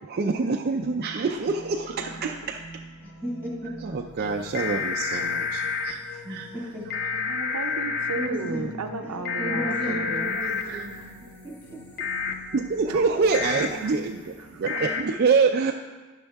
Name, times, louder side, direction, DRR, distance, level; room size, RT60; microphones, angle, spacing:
voice 1, 0.1-2.6 3.8-6.0 6.3-6.5 10.4-10.9 12.5-15.7, right 4 dB, 45° right, 2 dB, 0.3 m, -26 dB
sound 1, 0.8-15.0, left 2 dB, 80° left, 1.3 m, -45 dB
voice 2, 1.3-1.7 2.0-2.6 5.4-5.5 6.1-6.3 6.5-6.7 7.1-10.3 10.9-11.2 12.9-13.2 13.8-14.0 14.4-14.8 15.1-15.2, right 4 dB, 90° right, 5 dB, 0.6 m, -36 dB
voice 3, 3.0-3.8 5.9-6.9 7.8-8.6 9.0-10.9 11.4-12.0, equal, 10° left, -4 dB, 1.9 m, -35 dB
sound 2, 4.5-5.9 6.9-8.3 9.2-10.6 12.0-12.3 13.3-13.7 14.7-15.0, left 5 dB, 40° left, 0.5 m, -28 dB
10.5 x 6.3 x 3.5 m, 1.3 s
head